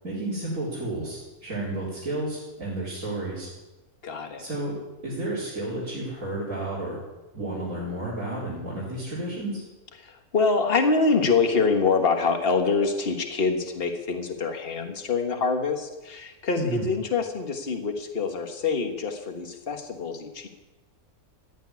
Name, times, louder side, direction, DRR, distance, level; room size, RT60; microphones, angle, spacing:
voice 1, 0.0-3.5 4.4-4.8 5.0-7.0 7.3-9.6 16.6-16.8, right 1 dB, 70° right, -7 dB, 4.5 m, -31 dB
voice 2, 4.0-4.5 10.0-20.5, left 4 dB, 40° left, 4 dB, 1.7 m, -25 dB
14.5 x 9.1 x 9.5 m, 1.1 s
omnidirectional pair, 1.5 m